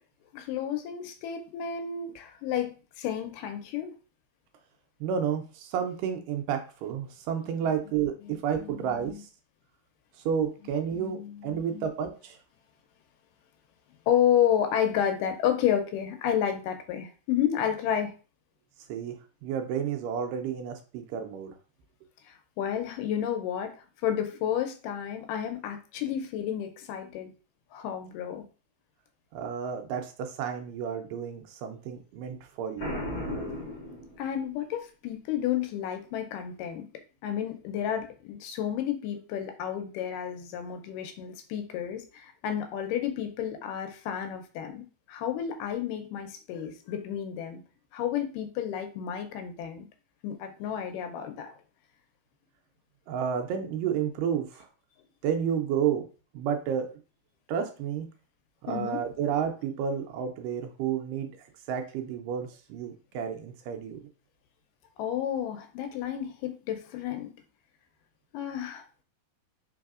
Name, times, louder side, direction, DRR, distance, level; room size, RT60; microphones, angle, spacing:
voice 1, 0.3-4.0 8.2-9.2 10.9-11.9 14.1-18.1 22.3-23.7 24.0-27.3 27.7-28.4 34.2-36.9 37.2-47.6 47.9-49.9 50.2-51.5 58.7-59.1 65.0-67.3 68.3-68.9, left 9 dB, 80° left, 6 dB, 2.1 m, -31 dB
voice 2, 5.0-9.3 10.3-12.4 18.9-19.2 19.4-21.5 29.3-33.0 53.1-54.7 55.2-56.1 56.3-56.9 57.5-58.1 58.6-64.0, right 8 dB, 80° right, 5 dB, 2.1 m, -31 dB
Boom, 32.8-34.6, left 1 dB, 40° left, 1.2 m, -35 dB
4.6 x 3.4 x 2.4 m, 0.36 s
omnidirectional pair, 3.9 m